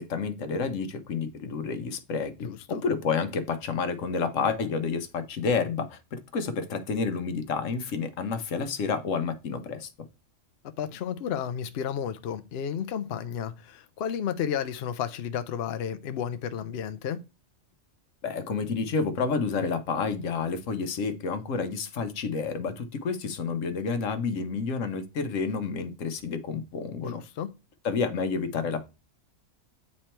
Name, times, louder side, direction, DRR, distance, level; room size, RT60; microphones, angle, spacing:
voice 1, 0.0-9.9 18.2-27.2 27.8-28.9, left 5 dB, 85° left, 1.2 m, -30 dB
voice 2, 2.4-2.8 10.8-17.2 27.0-27.5, left 8 dB, 60° left, 0.8 m, -32 dB
8.4 x 3.2 x 4.4 m
omnidirectional pair, 1.3 m